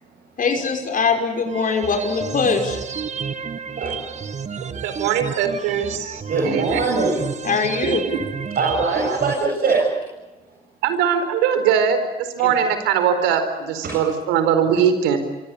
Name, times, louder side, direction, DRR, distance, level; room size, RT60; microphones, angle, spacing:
voice 1, 0.4-2.8 7.4-8.0, left 5 dB, 50° left, 3 dB, 5.9 m, -21 dB
sound 1, 1.5-9.5, right 6 dB, 40° right, 1.8 m, -31 dB
voice 2, 4.8-6.8 7.8-8.2 10.8-15.2, right 8 dB, 80° right, 9 dB, 4.5 m, -21 dB
voice 3, 6.3-7.2 8.6-10.0 13.8-14.1, right 4 dB, 60° right, -1 dB, 7.8 m, -21 dB
27.5 x 24.0 x 8.6 m, 1.2 s
hypercardioid pair, 60°, 18 cm